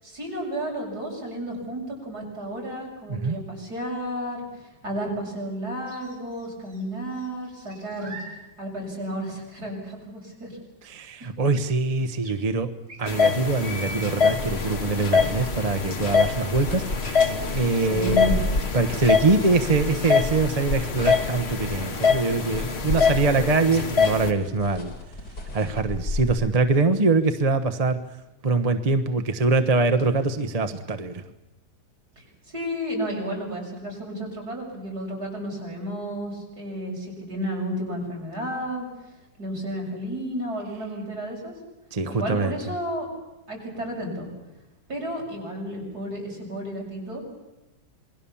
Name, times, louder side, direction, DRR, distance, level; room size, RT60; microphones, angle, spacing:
voice 1, 0.0-8.2 8.6-10.6 17.8-18.4 32.2-38.9 39.4-41.5 42.1-43.1 43.5-44.3 44.9-47.2, equal, 60° right, -1 dB, 7.3 m, -32 dB
sound 1, 5.9-6.8 7.1-8.4 8.9-9.0 11.2-11.3 11.5-11.6 12.2-12.3 12.9-14.1, right 1 dB, 45° right, 4.6 m, -41 dB
voice 2, 10.8-12.7 13.0-18.3 18.7-24.9 25.5-28.0 28.4-31.2 41.9-42.5, right 3 dB, 25° right, 8 dB, 1.0 m, -23 dB
sound 2, 13.1-24.3, left 5 dB, 40° left, 1.6 m, -25 dB
sound 3, 14.3-26.3, left 2 dB, 70° left, 4.1 m, -33 dB
27.5 x 21.0 x 7.2 m, 1.0 s
omnidirectional pair, 1.9 m